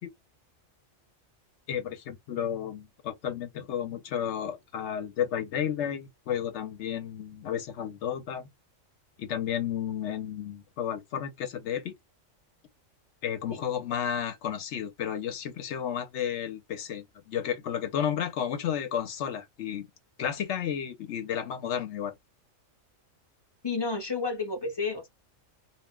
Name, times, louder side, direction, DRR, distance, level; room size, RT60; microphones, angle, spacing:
voice 1, 1.7-8.5 9.2-11.9 13.2-19.9 20.2-22.1, left 9 dB, 65° left, 0.9 m, -32 dB
voice 2, 23.6-25.1, left 4 dB, 30° left, 0.5 m, -31 dB
2.3 x 2.1 x 3.4 m
omnidirectional pair, 1.4 m